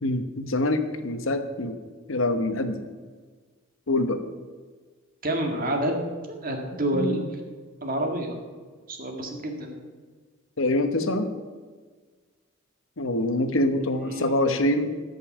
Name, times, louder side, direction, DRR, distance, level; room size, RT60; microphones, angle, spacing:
voice 1, 0.0-1.8 2.1-2.8 3.9-4.2 6.9-7.2 10.6-11.3 13.0-14.9, left 1 dB, 65° left, 8 dB, 1.0 m, -25 dB
voice 2, 5.2-7.3 7.8-8.4 8.9-9.7 14.1-14.8, right 1 dB, 45° right, 2 dB, 1.9 m, -29 dB
13.5 x 5.5 x 7.2 m, 1.5 s
head